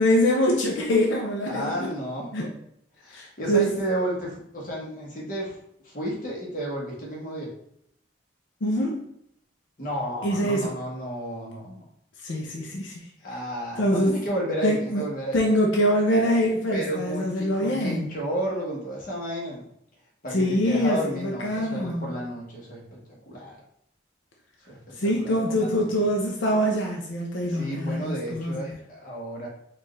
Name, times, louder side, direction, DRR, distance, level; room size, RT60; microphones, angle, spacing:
voice 1, 0.0-1.7 2.3-2.5 3.1-3.7 8.6-9.1 10.2-10.7 12.2-13.1 13.8-14.2 14.6-15.0 15.3-18.2 20.3-22.1 25.0-28.8, equal, 85° left, 0 dB, 0.6 m, -24 dB
voice 2, 1.4-2.3 3.0-5.6 5.8-7.5 9.8-11.8 13.2-15.4 16.7-19.7 20.2-23.0 23.3-23.6 24.6-26.1 27.5-29.5, right 1 dB, 45° left, -3 dB, 1.1 m, -32 dB
4.4 x 2.5 x 3.1 m, 0.72 s
head